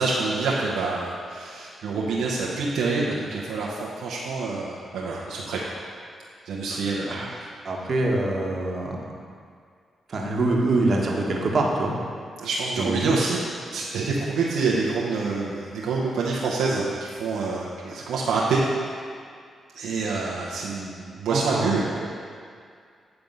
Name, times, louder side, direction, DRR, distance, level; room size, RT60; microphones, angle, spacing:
voice 1, 0.0-5.8 6.4-7.1 12.4-13.4 13.7-18.6 19.7-22.1, right 4 dB, 85° right, -5 dB, 0.8 m, -27 dB
voice 2, 7.6-9.0 10.1-11.9 12.8-13.1 21.3-21.7 22.0-22.1, right 2 dB, 55° right, -1 dB, 1.2 m, -24 dB
9.0 x 3.5 x 5.4 m, 2.2 s
supercardioid pair, 55°, 0 cm